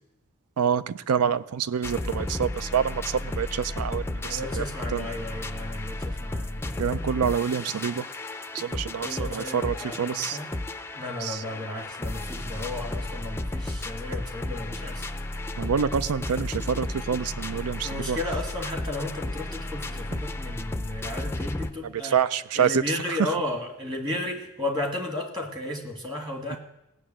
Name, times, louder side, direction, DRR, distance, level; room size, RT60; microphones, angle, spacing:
voice 1, 0.6-4.6 4.9-5.1 6.8-8.1 8.5-10.4 11.2-11.4 15.6-18.2 21.8-22.8 26.5-26.6, right 7 dB, 85° right, 16 dB, 0.4 m, -27 dB
sound 1, 1.8-21.7, left 2 dB, 10° left, 0.4 m, -33 dB
voice 2, 4.2-6.8 9.0-10.5 10.9-15.0 17.8-22.2 22.5-26.6, left 1 dB, 20° right, 3 dB, 1.8 m, -34 dB
17.0 x 6.8 x 8.7 m, 0.87 s
head